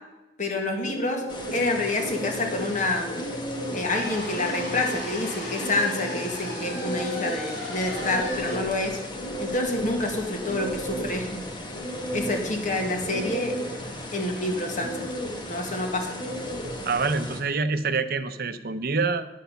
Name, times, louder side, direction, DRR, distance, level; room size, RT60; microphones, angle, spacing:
voice 1, 0.4-1.2 1.5-3.1 3.7-9.0 9.4-11.4 12.1-13.5 14.1-15.1 15.4-16.2, left 2 dB, 45° left, 3 dB, 1.9 m, -28 dB
sound 1, 0.8-16.9, equal, 90° left, 3.5 m, -36 dB
sound 2, 1.3-17.4, left 1 dB, 25° left, 1.2 m, -38 dB
sound 3, 3.9-10.0, left 1 dB, 70° left, 3.1 m, -37 dB
voice 2, 16.8-19.3, right 4 dB, 60° right, 10 dB, 0.7 m, -26 dB
10.0 x 8.2 x 5.7 m, 1.0 s
head